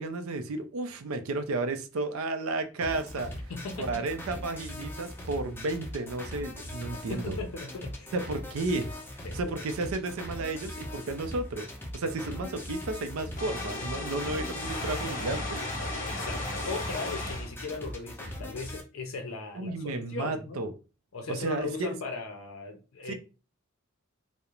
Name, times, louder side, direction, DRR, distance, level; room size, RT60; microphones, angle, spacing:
voice 1, 0.0-3.3 3.8-7.4 8.1-8.9 9.3-11.7 11.9-15.6 19.5-20.7 21.3-21.9 23.1-23.2, right 2 dB, 90° right, 8 dB, 0.4 m, -33 dB
sound 1, 2.8-18.8, left 1 dB, 10° left, 0.4 m, -40 dB
voice 2, 3.5-4.0 7.1-8.2 9.2-9.6 12.3-12.4 16.0-20.6 21.1-23.1, left 3 dB, 75° left, 4 dB, 0.5 m, -38 dB
sound 2, 13.4-17.5, left 2 dB, 40° left, 0.8 m, -35 dB
2.4 x 2.0 x 2.9 m, 0.32 s
head